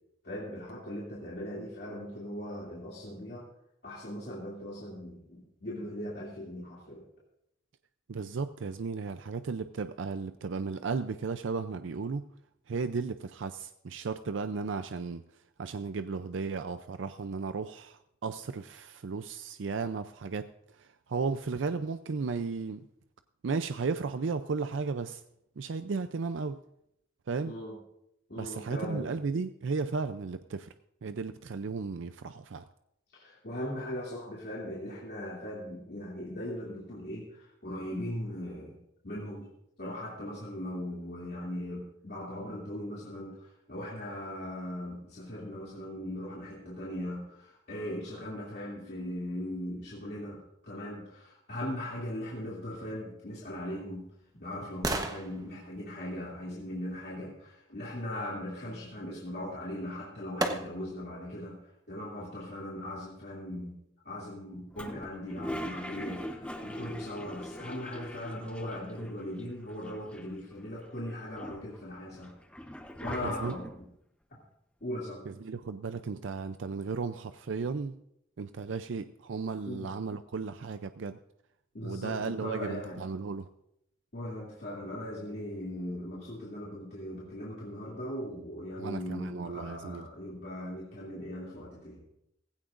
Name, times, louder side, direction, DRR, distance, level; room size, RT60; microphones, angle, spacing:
voice 1, 0.2-3.5 3.8-7.0 27.4-27.8 28.3-29.1 33.1-38.8 39.0-39.5 39.8-54.1 54.3-61.6 61.9-63.8 64.0-72.3 73.0-73.8 74.3-74.4 74.8-75.2 79.6-79.9 81.7-83.0 84.1-92.0, left 1 dB, 55° left, -6 dB, 2.6 m, -39 dB
voice 2, 8.1-12.3 12.7-22.9 23.4-25.2 25.6-26.6 27.3-27.5 28.4-30.7 31.0-32.6 73.2-73.5 75.3-78.0 78.4-81.2 81.8-83.5 88.8-90.0, right 4 dB, 80° right, 11 dB, 0.5 m, -35 dB
sound 1, 53.3-57.4 59.5-59.6 60.4-61.1 61.6-61.7, right 2 dB, 20° right, 1.0 m, -38 dB
Toilet flush, 64.7-69.1 69.4-69.5 69.7-70.5 71.0-73.9, equal, 5° left, 0.8 m, -42 dB
16.5 x 16.0 x 2.5 m, 0.78 s
head